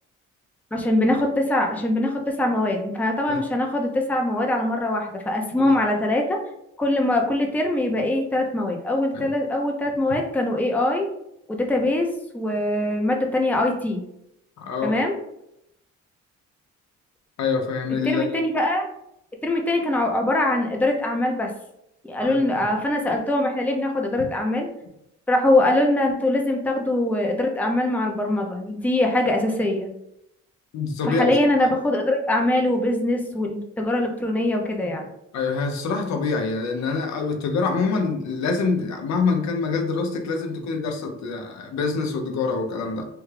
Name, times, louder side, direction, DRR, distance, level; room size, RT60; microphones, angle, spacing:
voice 1, 0.7-6.4 6.8-11.1 11.5-12.1 12.3-14.0 14.8-15.2 18.0-18.9 19.4-21.5 22.1-24.7 25.3-29.9 31.0-35.1, left 1 dB, 5° left, 1 dB, 0.6 m, -22 dB
voice 2, 14.6-15.0 17.4-18.3 22.2-22.4 30.7-31.4 35.3-43.1, left 4 dB, 65° left, 4 dB, 0.6 m, -25 dB
3.3 x 2.3 x 3.2 m, 0.78 s
cardioid pair, 90°, 30 cm